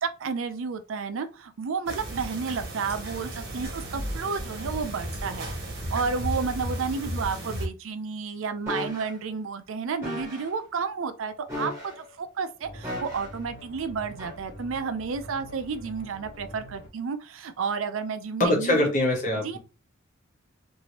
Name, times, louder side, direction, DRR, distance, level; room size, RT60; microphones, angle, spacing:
voice 1, 0.0-5.5 5.9-18.9 19.4-19.6, right 5 dB, 75° right, 0.4 m, -31 dB
sound 1, 1.9-7.7, right 1 dB, 50° right, 0.9 m, -34 dB
sound 2, 8.7-9.1 10.0-10.5 11.5-12.1 12.8-13.4 14.2-14.4, left 1 dB, 15° right, 1.3 m, -35 dB
sound 3, 12.6-16.9, equal, 60° left, 1.1 m, -45 dB
voice 2, 18.4-19.6, left 1 dB, 35° left, 1.0 m, -23 dB
2.8 x 2.6 x 2.9 m
head